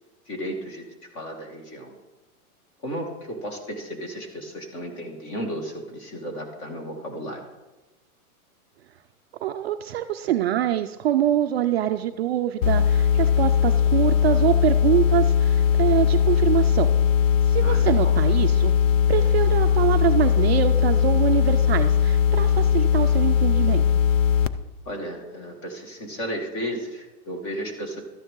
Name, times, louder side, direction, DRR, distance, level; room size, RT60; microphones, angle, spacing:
voice 1, 0.3-0.8 1.1-1.9 2.8-7.5 17.6-18.1 24.9-28.0, equal, 30° left, 3 dB, 2.0 m, -34 dB
voice 2, 9.4-16.9 17.5-18.7 19.1-23.9, right 12 dB, 45° right, 7 dB, 0.4 m, -24 dB
sound 1, 12.6-24.5, left 8 dB, 60° left, 0.7 m, -19 dB
13.0 x 9.7 x 3.7 m, 1.1 s
supercardioid pair, 155°, 45 cm